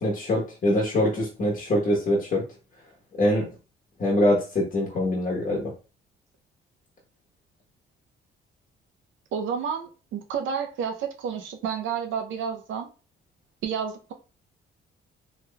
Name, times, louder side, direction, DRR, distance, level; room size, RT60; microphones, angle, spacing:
voice 1, 0.0-2.4 3.2-3.5 4.0-5.7, left 1 dB, 40° left, 1.1 m, -24 dB
voice 2, 9.3-12.9 13.6-14.1, right 7 dB, 80° right, 0.6 m, -30 dB
3.2 x 2.9 x 2.2 m
cardioid pair, 90°, 20 cm